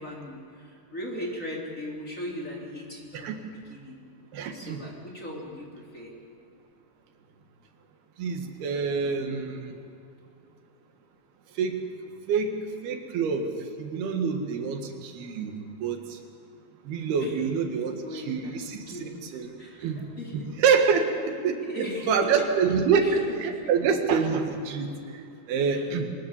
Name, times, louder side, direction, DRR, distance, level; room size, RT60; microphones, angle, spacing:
voice 1, 0.0-4.0 4.5-6.1 17.1-19.2 19.6-20.5 21.6-22.3 23.0-23.2 23.5-23.6 25.7-25.9, equal, 20° left, -3 dB, 3.6 m, -39 dB
voice 2, 4.3-4.8 8.2-9.8 11.6-11.8 12.3-12.5 12.8-13.5 13.8-15.6 15.8-16.2 16.9-19.0 19.3-19.5 19.8-20.0 20.6-26.1, right 5 dB, 90° right, 4 dB, 3.8 m, -26 dB
24.0 x 20.0 x 7.4 m, 2.5 s
omnidirectional pair, 4.4 m